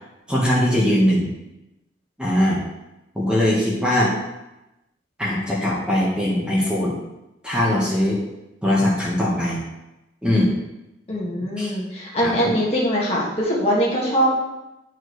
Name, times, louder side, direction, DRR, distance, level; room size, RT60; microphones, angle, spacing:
voice 1, 0.3-1.3 2.2-2.6 3.1-4.1 5.2-7.0 7.4-8.2 8.6-9.6 10.2-10.5 11.6-11.7 12.2-12.5, left 1 dB, 5° right, -5 dB, 1.2 m, -20 dB
voice 2, 11.1-14.3, equal, 30° left, -4 dB, 1.5 m, -22 dB
9.8 x 4.7 x 3.2 m, 0.95 s
head